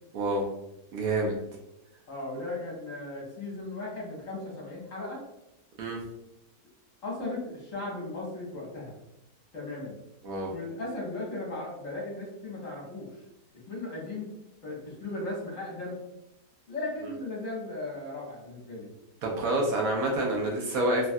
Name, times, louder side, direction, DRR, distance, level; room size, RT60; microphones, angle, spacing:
voice 1, 0.1-0.5 0.9-1.4 5.8-6.0 10.2-10.5 19.2-21.1, right 1 dB, 70° right, -1 dB, 1.0 m, -27 dB
voice 2, 2.1-5.2 7.0-8.9 9.5-10.0 10.5-13.1 13.7-14.3 14.6-16.0 16.7-18.9, left 2 dB, 60° left, -4 dB, 1.2 m, -37 dB
3.1 x 2.3 x 2.6 m, 0.86 s
omnidirectional pair, 1.7 m